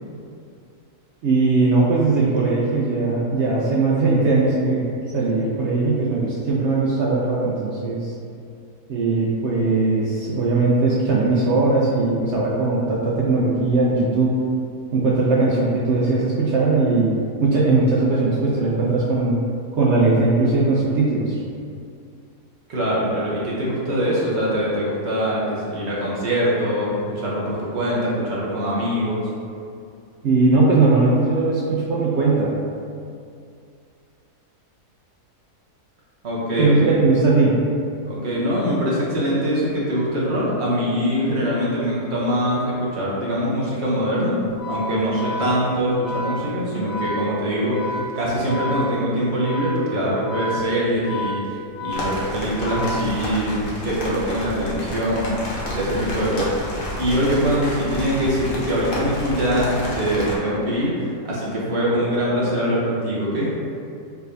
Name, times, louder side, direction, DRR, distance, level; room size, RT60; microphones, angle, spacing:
voice 1, 1.2-4.8 5.1-8.1 8.9-14.4 14.9-17.1 17.4-19.4 19.7-21.4 30.2-32.5 36.6-37.6, right 3 dB, 75° right, -5 dB, 0.6 m, -19 dB
voice 2, 22.7-29.2 36.2-37.0 38.0-51.4 51.8-53.5 53.8-55.4 55.7-56.6 57.0-63.5, equal, 50° right, -7 dB, 1.0 m, -23 dB
Organ, 44.5-53.6, left 1 dB, 90° left, 0.5 m, -31 dB
sound 1, 51.9-60.4, left 1 dB, 50° left, 0.7 m, -30 dB
4.5 x 3.2 x 2.6 m, 2.4 s
omnidirectional pair, 1.7 m